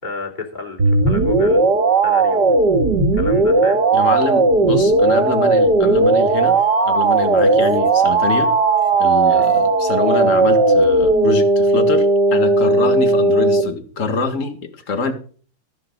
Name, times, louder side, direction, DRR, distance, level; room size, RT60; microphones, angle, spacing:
voice 1, 0.0-1.6 2.0-2.6 3.1-3.8 9.2-9.5, left 3 dB, 20° left, 1 dB, 3.1 m, -31 dB
sound 1, 0.8-13.6, right 3 dB, 55° right, 2.5 m, -16 dB
voice 2, 3.9-6.6 6.8-8.5 9.0-15.1, left 4 dB, 40° left, 7 dB, 2.1 m, -24 dB
Musical instrument, 5.6-10.8, left 1 dB, 75° right, 2.1 m, -32 dB
14.0 x 11.0 x 4.0 m, 0.42 s
omnidirectional pair, 2.3 m